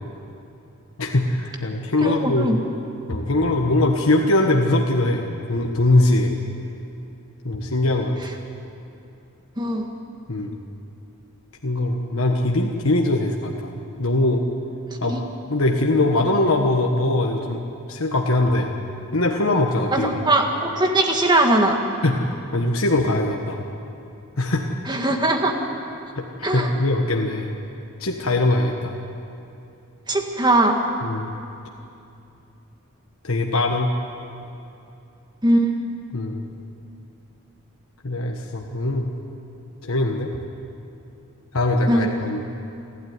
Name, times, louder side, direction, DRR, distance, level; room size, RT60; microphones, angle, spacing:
voice 1, 1.0-2.6 3.1-6.3 7.4-8.2 10.3-10.6 11.6-13.7 14.0-14.4 15.0-15.2 15.5-17.6 17.9-18.7 19.1-20.2 22.0-23.6 24.4-24.7 26.1-27.5 28.0-28.9 31.0-31.3 33.2-33.9 36.1-36.4 38.0-39.1 39.8-40.3 41.5-42.4, left 2 dB, 80° left, 1 dB, 1.5 m, -21 dB
voice 2, 2.0-2.6 9.6-9.9 15.0-15.2 19.9-21.8 24.9-25.6 26.4-26.7 30.1-30.8 35.4-35.7 41.9-42.1, right 1 dB, 20° right, 3 dB, 1.8 m, -20 dB
29.5 x 12.5 x 9.7 m, 2.7 s
head